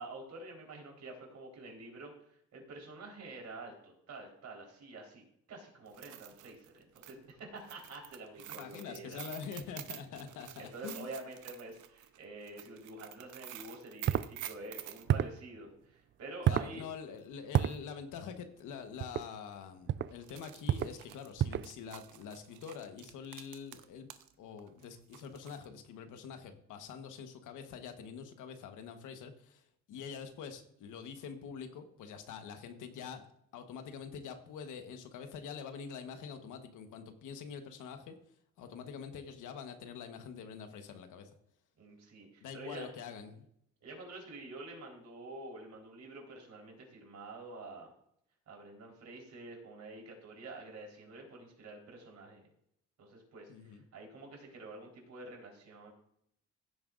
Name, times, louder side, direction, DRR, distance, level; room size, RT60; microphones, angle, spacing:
voice 1, 0.0-5.2 5.5-9.3 10.6-16.8 41.8-42.9 43.8-47.9 48.5-52.5 53.0-55.9, right 2 dB, 65° right, 0 dB, 4.0 m, -48 dB
sound 1, 5.9-15.0 17.2-17.3 17.7-17.8 18.6-18.8 19.1-19.2 20.1-24.3 24.6-25.7, right 13 dB, 90° right, 0.8 m, -49 dB
voice 2, 8.5-11.1 16.5-24.1 24.4-33.3 33.5-38.1 38.6-41.3 42.4-43.5 53.5-53.8, left 6 dB, 85° left, 7 dB, 1.2 m, -45 dB
sound 2, 14.1-14.3 15.1-15.4 16.4-16.7 17.5-17.8 19.0-19.3 19.9-20.1 20.7-21.0 21.4-21.7, right 10 dB, 40° right, 0.4 m, -29 dB
15.5 x 8.9 x 2.5 m, 0.73 s
cardioid pair, 90°, 30 cm